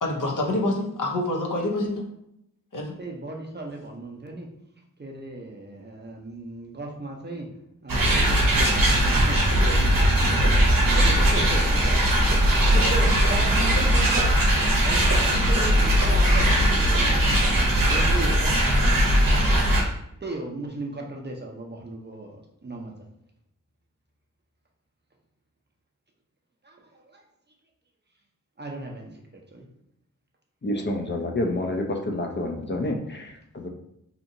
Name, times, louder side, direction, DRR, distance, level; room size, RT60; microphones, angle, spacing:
voice 1, 0.0-2.1 2.7-2.9 12.8-12.9, left 1 dB, 70° left, 0 dB, 0.7 m, -27 dB
voice 2, 3.0-4.5 5.0-7.5 7.8-12.0 12.5-14.5 14.8-18.5 20.2-22.4 22.6-22.9 26.6-27.2 28.6-29.6, right 2 dB, 30° right, 0 dB, 0.6 m, -36 dB
sound 1, 7.9-19.8, right 1 dB, 90° right, 0.7 m, -20 dB
voice 3, 30.6-33.7, left 1 dB, 35° left, 2 dB, 0.5 m, -28 dB
2.8 x 2.6 x 2.6 m, 0.78 s
cardioid pair, 45°, 33 cm